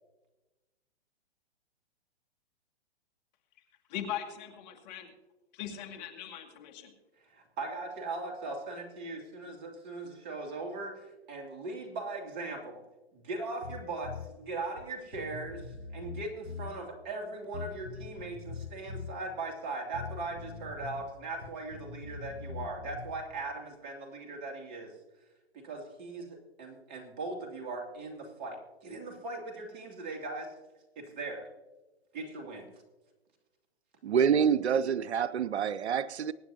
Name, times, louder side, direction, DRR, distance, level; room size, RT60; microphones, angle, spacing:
voice 1, 3.9-5.1 5.5-6.9, left 10 dB, 40° left, 2.1 m, -40 dB
voice 2, 7.2-12.8 13.1-24.9 25.5-30.5 31.0-31.5 32.1-32.7, right 3 dB, 30° right, 2.6 m, -39 dB
Bass guitar, 13.6-14.3 14.8-14.9 15.1-16.7 17.5-19.1 19.9-21.0 21.3-23.2, left 4 dB, 90° left, 3.3 m, -42 dB
voice 3, 34.0-36.3, right 7 dB, 90° right, 0.6 m, -27 dB
24.5 x 9.3 x 2.8 m
hypercardioid pair, 125°, 32 cm